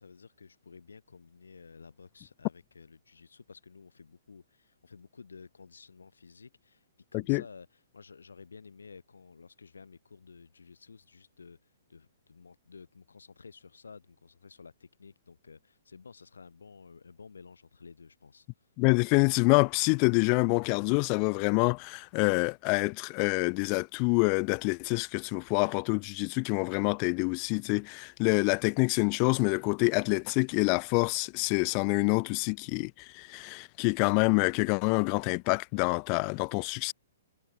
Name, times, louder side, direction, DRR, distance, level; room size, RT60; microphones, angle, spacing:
voice 1, 0.0-6.9 7.1-18.7, left 5 dB, 80° left, 5.2 m, -52 dB
voice 2, 18.8-36.9, left 40 dB or more, 35° left, 0.7 m, -27 dB
hypercardioid pair, 125°, 0 cm